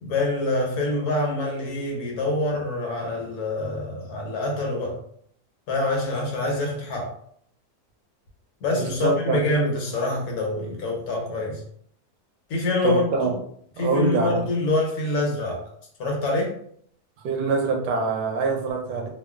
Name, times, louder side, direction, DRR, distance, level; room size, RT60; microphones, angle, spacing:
voice 1, 0.0-5.0 5.7-7.1 8.6-11.6 12.5-13.3 13.8-15.6 16.0-16.5, left 2 dB, 70° left, 0 dB, 1.2 m, -25 dB
voice 2, 8.7-9.4 12.8-13.3 13.8-14.5 17.2-19.1, right 4 dB, 90° right, 2 dB, 1.2 m, -24 dB
2.9 x 2.3 x 2.3 m, 0.66 s
omnidirectional pair, 1.7 m